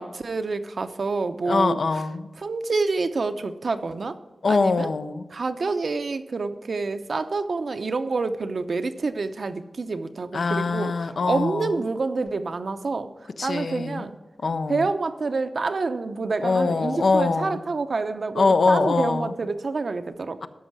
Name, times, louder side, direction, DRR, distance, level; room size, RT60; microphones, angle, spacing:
voice 1, 0.0-1.8 2.4-4.2 4.5-4.9 5.3-10.9 11.2-13.1 13.4-14.2 14.7-20.4, right 3 dB, 65° right, 9 dB, 0.7 m, -27 dB
voice 2, 1.4-2.3 4.4-5.3 10.3-11.7 13.4-14.0 14.4-14.9 16.4-17.6 18.4-19.3 20.4-20.5, left 4 dB, 75° left, 10 dB, 0.6 m, -23 dB
13.0 x 5.5 x 6.1 m, 1.2 s
wide cardioid pair, 80°, 0 cm